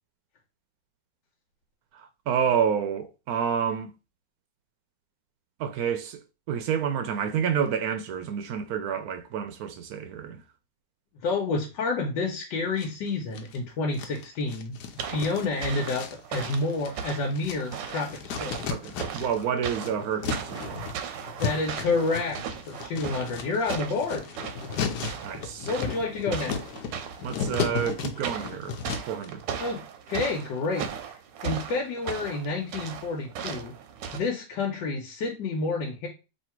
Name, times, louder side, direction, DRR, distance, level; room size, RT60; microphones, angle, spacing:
voice 1, 1.9-3.9 5.6-6.2 6.5-10.4 15.1-15.2 18.7-20.9 25.2-25.7 27.2-28.8 29.1-29.4, right 7 dB, 70° right, 0.9 m, -29 dB
voice 2, 11.2-14.7 15.1-18.7 21.0-21.1 21.4-24.3 25.6-26.7 29.6-30.9 31.4-33.7 34.1-36.1, left 3 dB, 85° left, 1.5 m, -29 dB
sound 1, 12.8-13.6 13.9-19.4 19.7-29.3, left 6 dB, 70° left, 1.2 m, -35 dB
sound 2, 15.0-34.2, right 7 dB, 90° right, 1.3 m, -37 dB
3.2 x 2.8 x 4.4 m
omnidirectional pair, 1.9 m